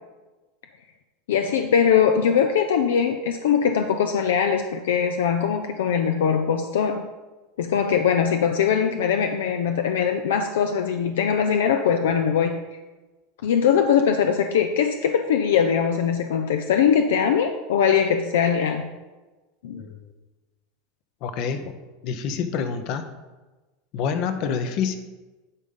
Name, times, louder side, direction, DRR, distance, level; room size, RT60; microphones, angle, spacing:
voice 1, 1.3-7.0 7.6-12.6 13.4-18.8 19.6-19.8, left 7 dB, 75° left, 5 dB, 0.5 m, -21 dB
voice 2, 21.2-21.7 22.0-23.1 23.9-25.0, left 6 dB, 55° left, 9 dB, 0.9 m, -27 dB
10.5 x 3.7 x 5.5 m, 1.2 s
hypercardioid pair, 90°, 0 cm